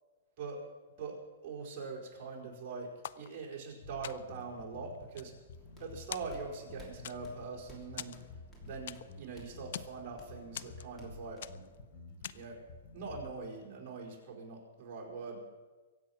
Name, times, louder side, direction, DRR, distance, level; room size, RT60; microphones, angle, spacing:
voice 1, 1.4-5.3 5.8-8.2 8.6-11.4 12.3-12.6 12.9-15.4, right 4 dB, 30° right, -3 dB, 4.8 m, -43 dB
sound 1, 3.0-3.7 4.0-4.5 4.9-5.8 6.1-6.7 7.0-7.5 8.0-9.2 9.5-10.0 10.5-11.1 11.4-11.8 12.2-12.6, left 10 dB, 60° left, 0.5 m, -45 dB
Bass guitar, 3.8-13.4, left 3 dB, 35° left, 3.6 m, -51 dB
sound 2, 5.5-11.8, equal, 10° left, 3.0 m, -58 dB
23.5 x 8.5 x 6.1 m, 1.3 s
hypercardioid pair, 155°, 0 cm